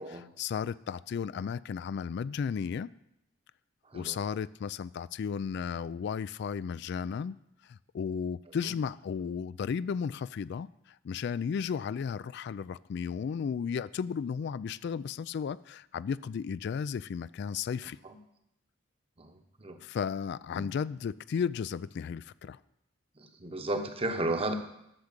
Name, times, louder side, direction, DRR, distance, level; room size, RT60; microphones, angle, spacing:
voice 1, 0.0-2.9 3.9-7.4 7.6-18.0 19.8-22.6, left 6 dB, 60° left, 18 dB, 0.3 m, -34 dB
voice 2, 3.8-4.2 8.6-8.7 18.0-18.2 19.2-19.8 20.5-20.7 23.2-24.5, right 2 dB, 30° right, 7 dB, 1.0 m, -34 dB
12.0 x 7.2 x 6.6 m, 0.80 s
head